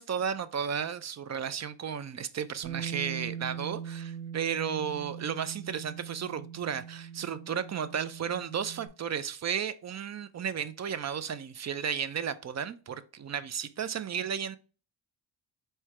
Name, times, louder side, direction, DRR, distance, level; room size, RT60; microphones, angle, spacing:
voice 1, 0.0-14.6, right 7 dB, 35° right, 0.4 m, -34 dB
Bass guitar, 2.6-8.9, right 8 dB, 80° right, 0.7 m, -41 dB
4.4 x 2.2 x 4.7 m
cardioid pair, 65°, 47 cm